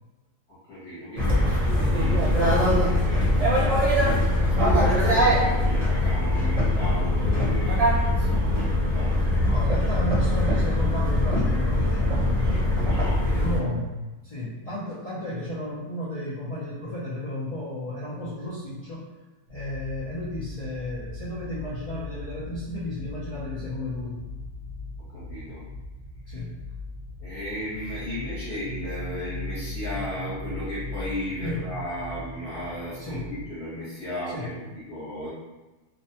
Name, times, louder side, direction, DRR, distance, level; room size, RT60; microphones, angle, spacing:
voice 1, 0.5-9.4 12.3-13.4 25.1-25.6 26.2-26.4 27.2-35.3, equal, 55° left, -11 dB, 1.1 m, -36 dB
sound 1, 1.2-13.6, left 1 dB, 35° right, 0.6 m, -22 dB
voice 2, 9.4-13.0 13.3-14.0 14.2-19.1 19.5-24.2 26.3-26.5 31.4-31.7 33.0-33.2 34.3-34.5, left 1 dB, 80° left, -9 dB, 0.3 m, -33 dB
sound 2, 19.5-33.5, left 2 dB, 75° right, 0.9 m, -38 dB
2.5 x 2.1 x 2.7 m, 1.1 s
omnidirectional pair, 1.4 m